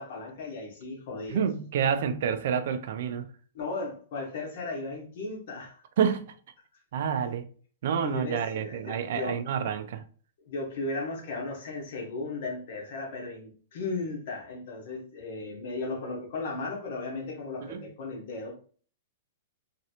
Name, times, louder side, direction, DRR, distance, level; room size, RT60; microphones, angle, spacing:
voice 1, 0.0-1.4 3.5-5.8 8.0-9.4 10.5-18.6, left 3 dB, 50° left, 1.1 m, -36 dB
voice 2, 1.3-3.3 6.0-6.3 6.9-7.4 7.8-10.0 17.7-17.8, right 7 dB, 50° right, 0.4 m, -28 dB
3.0 x 2.8 x 2.7 m
supercardioid pair, 175°, 0 cm